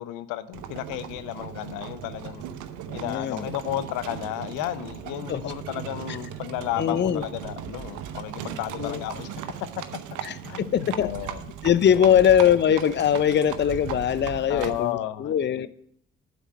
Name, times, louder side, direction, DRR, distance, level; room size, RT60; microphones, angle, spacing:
voice 1, 0.0-2.4 2.9-9.4 9.8-9.9 10.5-11.4 11.9-12.2 14.5-15.7, left 13 dB, 85° left, 14 dB, 0.5 m, -33 dB
Livestock farm animals working animals, 0.5-14.9, right 9 dB, 80° right, 0.7 m, -37 dB
voice 2, 2.9-3.5 5.3-5.5 6.1-6.2 6.8-7.2 8.8-9.0 10.2-11.1 11.6-15.7, left 9 dB, 35° left, 17 dB, 0.5 m, -22 dB
8.1 x 5.9 x 6.2 m, 0.72 s
hypercardioid pair, 45°, 30 cm